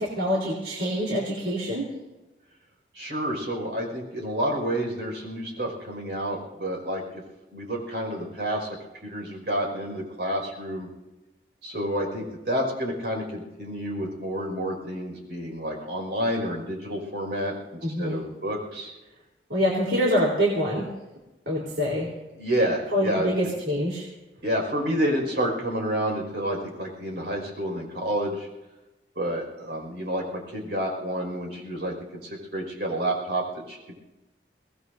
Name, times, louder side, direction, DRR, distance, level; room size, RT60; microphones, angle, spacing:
voice 1, 0.0-1.9 17.8-18.2 19.5-20.9 21.5-22.1 22.9-24.0, equal, 85° right, -4 dB, 3.9 m, -25 dB
voice 2, 2.9-7.2 7.5-8.7 9.0-10.9 11.6-18.9 22.3-23.3 24.4-28.5 29.2-33.9, right 1 dB, 60° right, 0 dB, 5.5 m, -29 dB
24.5 x 19.5 x 2.7 m, 1.0 s
head